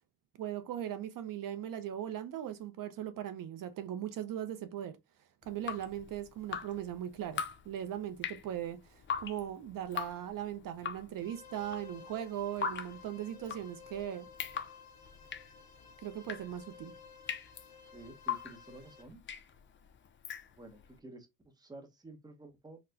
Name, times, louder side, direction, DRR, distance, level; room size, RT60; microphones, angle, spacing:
voice 1, 0.4-5.0 5.5-14.3 16.0-16.9, right 11 dB, 65° right, 0.5 m, -39 dB
Drip, 5.4-20.9, left 7 dB, 35° left, 0.4 m, -42 dB
sound 1, 11.1-19.0, left 6 dB, 65° left, 1.2 m, -55 dB
voice 2, 17.9-19.2 20.6-22.8, right 2 dB, 10° right, 0.7 m, -51 dB
4.1 x 2.1 x 2.7 m
cardioid pair, 135°, 36 cm